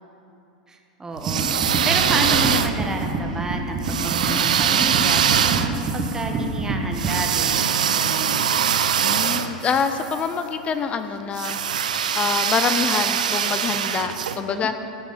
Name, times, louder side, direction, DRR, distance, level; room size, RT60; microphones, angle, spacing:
voice 1, 0.7-8.6 14.3-14.7, right 2 dB, 15° right, 3 dB, 1.2 m, -31 dB
sound 1, 1.2-3.1 3.8-10.2 11.3-14.4, right 8 dB, 80° right, 0.5 m, -23 dB
sound 2, 1.3-7.1, right 3 dB, 35° right, 1.6 m, -27 dB
voice 2, 9.0-11.6 12.2-14.7, left 6 dB, 30° left, 9 dB, 0.6 m, -25 dB
15.0 x 6.2 x 5.5 m, 2.8 s
hypercardioid pair, 95°, 4 cm